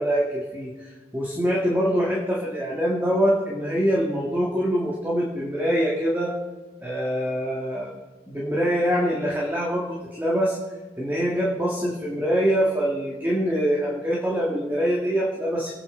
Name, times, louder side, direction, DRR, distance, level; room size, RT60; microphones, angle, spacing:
voice 1, 0.0-6.3 6.8-7.9 8.3-10.6 11.0-15.7, equal, 10° right, -4 dB, 2.1 m, -24 dB
24.0 x 9.4 x 4.0 m, 1.3 s
head